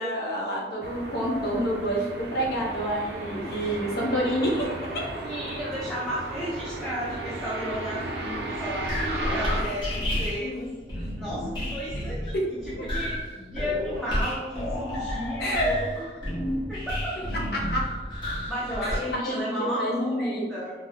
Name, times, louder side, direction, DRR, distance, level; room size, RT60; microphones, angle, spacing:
voice 1, 0.0-5.1 10.4-10.7 12.3-12.4 12.8-12.9 15.4-15.8 17.5-17.8 18.8-20.5, equal, 55° left, -3 dB, 0.6 m, -28 dB
sound 1, 0.8-9.6, right 1 dB, 60° right, 0.4 m, -35 dB
voice 2, 5.2-10.7 11.2-12.3 12.7-16.1 16.7-17.1 18.5-20.7, equal, ahead, -9 dB, 0.4 m, -33 dB
sound 2, 8.7-19.1, left 1 dB, 25° left, 0.9 m, -31 dB
4.0 x 2.0 x 2.4 m, 1.3 s
head